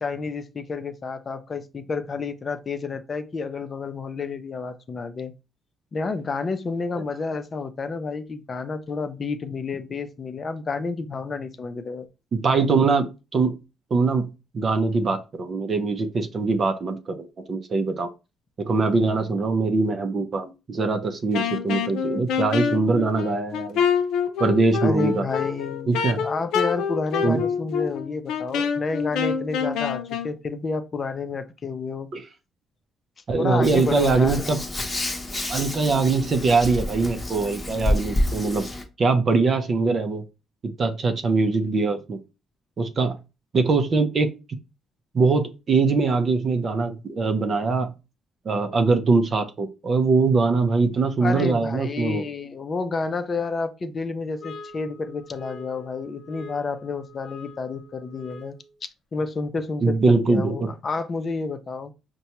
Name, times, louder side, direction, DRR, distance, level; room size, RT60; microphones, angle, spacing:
voice 1, 0.0-5.3 5.9-12.1 24.8-26.0 26.2-32.1 33.4-34.5 51.2-58.6 59.1-61.9, left 4 dB, 35° left, 0.6 m, -30 dB
voice 2, 12.3-13.6 13.9-14.3 14.5-18.1 18.6-23.8 24.4-25.3 25.9-26.3 27.2-27.4 32.1-32.2 33.3-34.6 35.5-38.6 39.0-40.2 40.6-42.2 42.8-43.2 43.5-44.3 45.1-47.9 48.5-52.2 59.8-60.7, right 4 dB, 40° right, 0.6 m, -22 dB
Wind instrument woodwind instrument, 21.3-30.3, left 7 dB, 85° left, 0.5 m, -26 dB
Hands, 33.6-38.8, left 1 dB, 15° left, 0.9 m, -28 dB
sound 1, 54.4-58.8, left 2 dB, 50° left, 1.0 m, -44 dB
5.2 x 2.2 x 2.9 m
cardioid pair, 105°, 0 cm